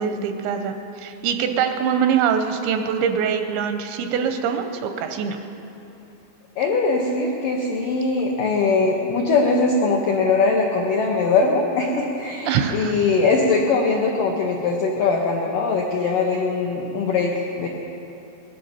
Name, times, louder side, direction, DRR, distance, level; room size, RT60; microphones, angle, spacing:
voice 1, 0.0-5.4 12.5-13.0, right 7 dB, 85° right, 6 dB, 2.9 m, -23 dB
voice 2, 6.6-17.3 17.6-17.7, left 4 dB, 80° left, 0 dB, 1.9 m, -21 dB
20.0 x 12.0 x 5.6 m, 2.9 s
omnidirectional pair, 5.4 m